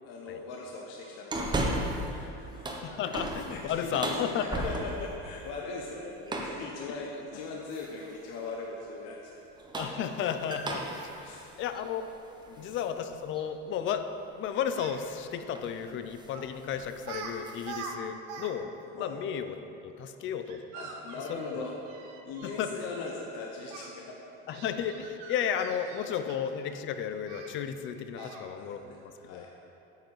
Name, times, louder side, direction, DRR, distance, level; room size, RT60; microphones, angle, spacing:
voice 1, 0.0-2.8 3.1-3.2 3.5-9.4 11.2-11.5 12.5-12.7 19.0-19.2 20.7-21.8 22.3-24.2 28.2-29.5, left 3 dB, 60° left, -1 dB, 1.1 m, -40 dB
sound 1, 1.3-2.1 2.5-5.2 6.3-6.7 7.7-8.2 9.4-12.9 13.3-13.4 15.0-15.2 15.5-15.8 16.1-16.4 16.7-17.7, right 1 dB, 15° right, 0.9 m, -35 dB
voice 2, 2.6-4.6 6.9-7.0 9.7-12.0 12.6-19.6 19.8-20.6 21.3-21.6 22.4-22.7 24.5-28.9 29.2-29.4, left 8 dB, 40° left, 9 dB, 0.6 m, -34 dB
Speech, 14.6-15.0 16.3-16.5 17.0-17.3 17.6-18.5 18.8-18.9 20.5-22.6 23.7-23.9 24.5-26.6 27.3-27.5 28.2-28.5, right 6 dB, 65° right, 1.2 m, -44 dB
9.0 x 7.8 x 4.7 m, 2.8 s
cardioid pair, 140°, 30 cm